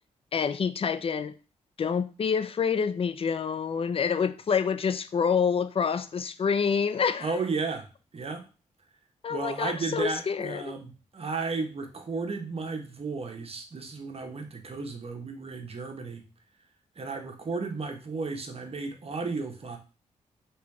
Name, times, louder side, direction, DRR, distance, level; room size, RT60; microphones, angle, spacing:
voice 1, 0.3-1.3 1.8-7.3 9.2-10.7, left 6 dB, 45° left, 0.5 m, -27 dB
voice 2, 7.2-7.9 8.1-8.4 9.3-16.3 17.0-19.8, right 4 dB, 45° right, 1.0 m, -33 dB
3.2 x 3.1 x 4.7 m
supercardioid pair, 50°, 14 cm